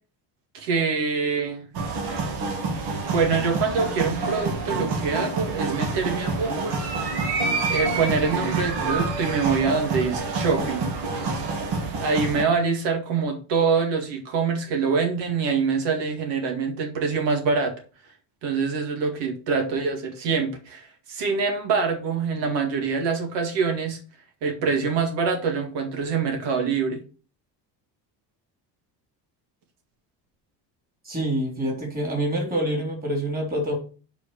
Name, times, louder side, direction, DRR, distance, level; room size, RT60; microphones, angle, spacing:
voice 1, 0.5-1.7 3.1-6.8 7.7-10.9 12.0-17.7 18.4-24.0 24.4-27.0, right 5 dB, 85° right, 3 dB, 2.3 m, -25 dB
sound 1, 1.7-12.4, right 3 dB, 65° right, 2.4 m, -27 dB
voice 2, 31.0-33.8, right 1 dB, 20° right, 1 dB, 3.5 m, -26 dB
8.1 x 5.1 x 6.7 m, 0.38 s
cardioid pair, 155°, 42 cm